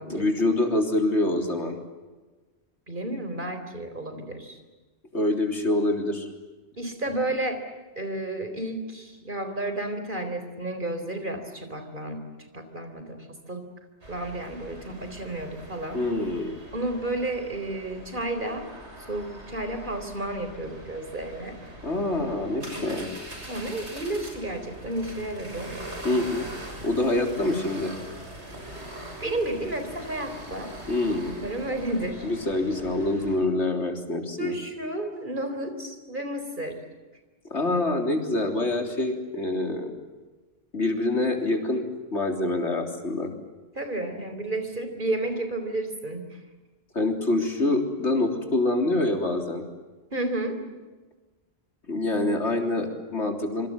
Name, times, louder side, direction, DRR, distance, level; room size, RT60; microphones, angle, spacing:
voice 1, 0.1-1.8 5.1-6.3 15.9-16.6 21.8-23.1 26.0-26.5 26.8-27.9 30.9-31.3 32.2-34.5 37.5-39.9 40.7-41.8 42.1-43.3 46.9-49.6 51.9-53.7, left 2 dB, 90° left, 5 dB, 3.9 m, -25 dB
voice 2, 2.9-4.6 6.8-7.6 8.0-12.2 12.5-13.6 14.1-16.0 16.7-18.7 19.1-21.6 22.7-23.0 23.5-25.8 29.2-30.7 31.4-32.3 34.4-36.8 43.8-46.2 50.1-50.6, right 1 dB, 45° right, 7 dB, 4.2 m, -32 dB
sound 1, 14.0-33.4, right 1 dB, 80° right, 6.9 m, -42 dB
26.5 x 25.0 x 7.6 m, 1.2 s
omnidirectional pair, 1.1 m